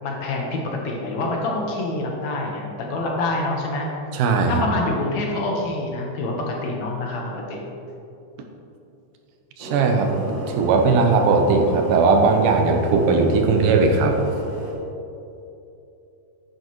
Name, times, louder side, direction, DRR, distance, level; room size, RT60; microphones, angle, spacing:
voice 1, 0.0-3.9 4.5-7.6, left 2 dB, 65° left, -1 dB, 2.2 m, -26 dB
voice 2, 4.1-4.6 9.6-14.3, right 4 dB, 85° right, 4 dB, 2.5 m, -18 dB
sound 1, 9.6-14.7, right 1 dB, 40° right, 2.2 m, -33 dB
10.5 x 8.9 x 3.1 m, 2.7 s
omnidirectional pair, 3.7 m